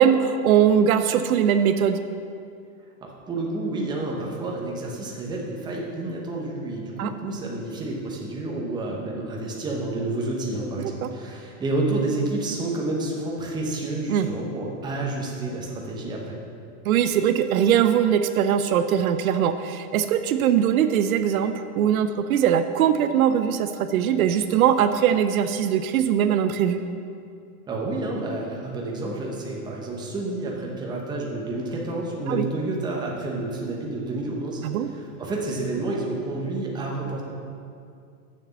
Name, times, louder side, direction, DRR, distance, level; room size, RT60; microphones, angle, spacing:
voice 1, 0.0-2.0 7.0-7.1 10.8-11.1 14.1-14.3 16.9-26.8 32.3-32.5 34.6-34.9, right 9 dB, 75° right, 9 dB, 0.6 m, -21 dB
voice 2, 3.0-16.4 27.7-37.2, right 2 dB, 10° right, -2 dB, 0.9 m, -29 dB
6.9 x 6.6 x 7.0 m, 2.4 s
supercardioid pair, 155°, 44 cm